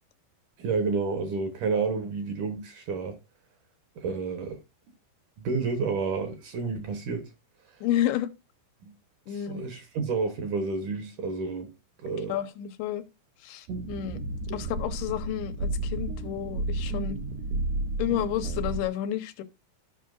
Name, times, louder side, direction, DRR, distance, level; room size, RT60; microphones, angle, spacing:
voice 1, 0.6-3.2 4.0-4.6 5.4-7.3 8.9-9.0 9.3-12.4, right 4 dB, 65° right, 2.3 m, -30 dB
voice 2, 7.8-8.3 9.3-9.6 12.3-13.0 13.4-14.2 14.5-17.2 18.0-19.4, left 12 dB, 90° left, 2.9 m, -30 dB
sound 1, 13.7-18.8, right 2 dB, 85° right, 1.5 m, -32 dB
14.5 x 5.6 x 2.5 m
omnidirectional pair, 4.6 m